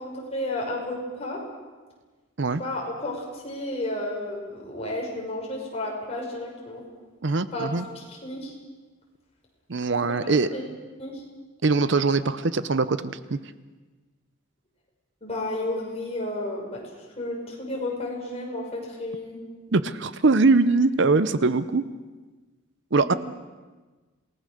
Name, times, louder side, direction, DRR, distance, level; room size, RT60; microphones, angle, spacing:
voice 1, 0.0-1.4 2.6-6.8 7.5-8.5 10.1-10.6 11.0-11.2 15.2-19.4 22.9-23.2, left 1 dB, 30° left, -2 dB, 5.9 m, -32 dB
voice 2, 7.2-7.9 9.7-10.5 11.6-13.4 19.7-21.8 22.9-23.1, right 3 dB, 55° right, 14 dB, 0.7 m, -22 dB
27.0 x 19.0 x 6.6 m, 1.3 s
head